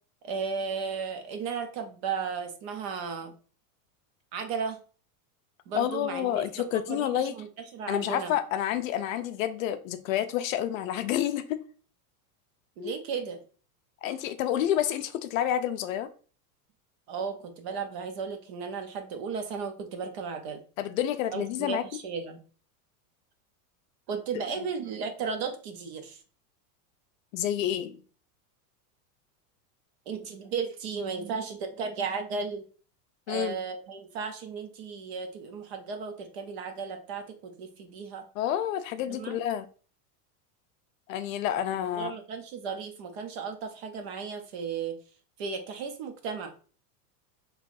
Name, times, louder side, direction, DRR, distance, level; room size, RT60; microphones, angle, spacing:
voice 1, 0.2-3.3 4.3-4.8 5.7-6.5 6.9-7.5 7.7-8.3 12.8-13.4 17.1-20.6 21.3-22.4 24.1-26.2 30.1-32.7 33.3-38.3 39.1-39.4 41.9-45.0 45.4-46.5, right 5 dB, 45° right, 6 dB, 0.7 m, -35 dB
voice 2, 5.7-7.3 7.9-11.6 12.8-12.9 14.0-16.1 20.8-21.8 27.3-28.0 33.3-33.6 38.4-39.7 41.1-42.1, left 11 dB, 60° left, 10 dB, 0.5 m, -29 dB
5.4 x 3.1 x 2.5 m, 0.39 s
supercardioid pair, 175°, 47 cm